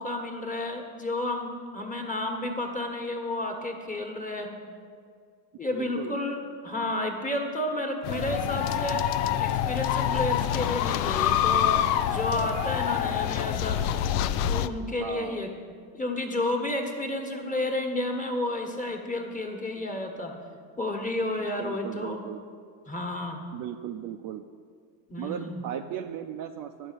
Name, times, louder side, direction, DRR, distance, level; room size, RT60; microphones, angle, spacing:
voice 1, 0.0-4.5 5.6-9.1 9.4-11.8 12.1-13.8 14.4-15.5 15.9-20.3 20.8-22.2 22.9-23.4 25.1-25.5, left 1 dB, 15° left, 2 dB, 1.4 m, -31 dB
voice 2, 5.7-6.2 15.0-15.5 21.4-22.4 23.5-24.4 25.2-26.9, right 10 dB, 45° right, 6 dB, 0.5 m, -36 dB
sound 1, 8.0-14.7, left 10 dB, 75° left, 0.6 m, -26 dB
9.9 x 5.0 x 8.1 m, 2.1 s
supercardioid pair, 90°, 49 cm